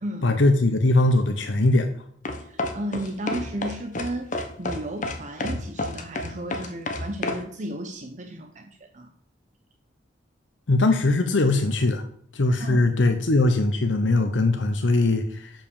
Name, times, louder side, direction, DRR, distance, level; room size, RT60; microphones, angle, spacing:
voice 1, 0.2-1.9 10.7-12.0 12.3-15.5, left 2 dB, 90° left, 6 dB, 0.8 m, -21 dB
sound 1, 2.2-7.4, left 2 dB, 45° left, 1.1 m, -29 dB
voice 2, 2.4-4.3 4.6-9.1 12.6-13.2, right 1 dB, 40° right, 5 dB, 0.8 m, -34 dB
7.0 x 5.6 x 6.9 m, 0.64 s
head